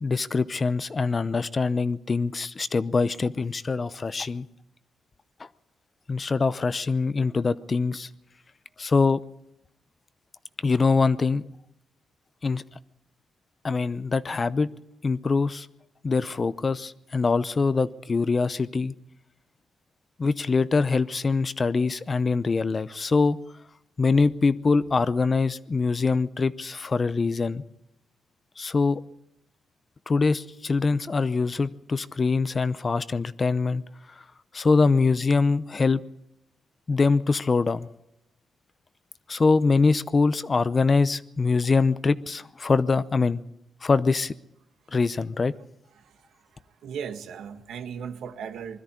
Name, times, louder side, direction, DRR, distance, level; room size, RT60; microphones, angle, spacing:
voice 1, 0.0-4.5 5.4-5.5 6.1-8.1 8.8-9.2 10.6-11.4 12.4-12.6 13.6-14.7 15.0-15.7 16.0-18.9 20.2-23.4 24.0-27.6 28.6-29.0 30.1-33.8 34.5-36.0 36.9-37.9 39.3-43.4 43.8-44.3 44.9-45.5, left 4 dB, 30° left, 0.7 m, -23 dB
voice 2, 45.9-48.8, right 7 dB, 80° right, 1.5 m, -38 dB
21.0 x 13.5 x 9.9 m
cardioid pair, 110°, 0 cm